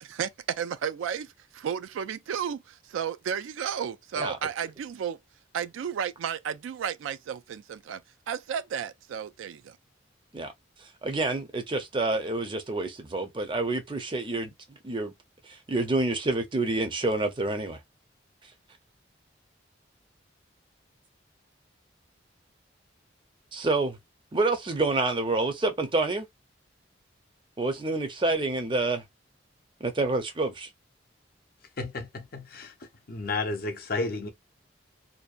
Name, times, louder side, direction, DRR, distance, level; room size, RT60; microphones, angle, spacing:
voice 1, 0.0-5.2 5.5-8.0 8.3-9.8, right 8 dB, 90° right, 0.3 m, -33 dB
voice 2, 10.8-15.1 15.4-17.8 23.5-24.0 24.3-26.3 27.6-29.0 29.8-30.7, right 2 dB, 25° right, 0.5 m, -28 dB
voice 3, 31.8-32.7 33.1-34.3, left 3 dB, 50° left, 0.5 m, -32 dB
2.6 x 2.2 x 2.3 m
head